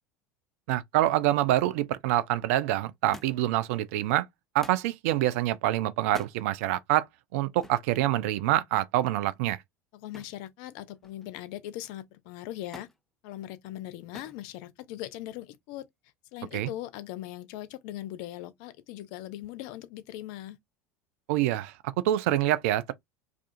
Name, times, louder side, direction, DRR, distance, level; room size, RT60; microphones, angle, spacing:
voice 1, 0.7-4.3 4.5-7.1 7.3-9.6 16.5-16.7 21.3-21.7 22.0-22.9, right 14 dB, 60° right, 0.3 m, -26 dB
Thump thud, 3.1-3.6 4.6-4.9 6.0-6.4 7.6-7.9 10.1-10.5 10.8-11.4 12.7-13.0 14.1-14.4 15.4-15.8 16.8-16.9, left 1 dB, 5° left, 0.5 m, -47 dB
voice 2, 9.9-12.9 13.2-15.8 16.3-20.6, left 14 dB, 55° left, 0.4 m, -40 dB
2.4 x 2.3 x 2.4 m
figure-of-eight pair, 75°, 8 cm